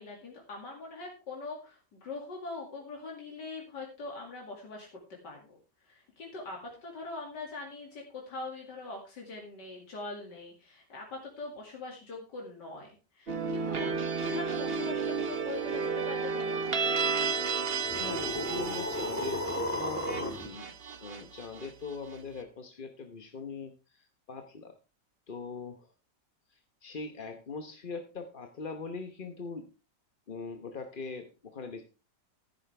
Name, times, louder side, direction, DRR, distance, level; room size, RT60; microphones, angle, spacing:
voice 1, 0.0-5.5 5.8-16.7, left 3 dB, 85° left, -1 dB, 3.0 m, -42 dB
sound 1, 13.3-22.1, right 5 dB, 40° right, 1.1 m, -32 dB
voice 2, 17.9-20.7 21.0-24.8 25.3-25.9 26.5-29.7 30.3-31.8, left 4 dB, 35° left, 6 dB, 1.0 m, -41 dB
sound 2, 17.9-20.5, equal, 10° left, 1.7 m, -34 dB
14.5 x 9.5 x 3.4 m, 0.31 s
omnidirectional pair, 1.8 m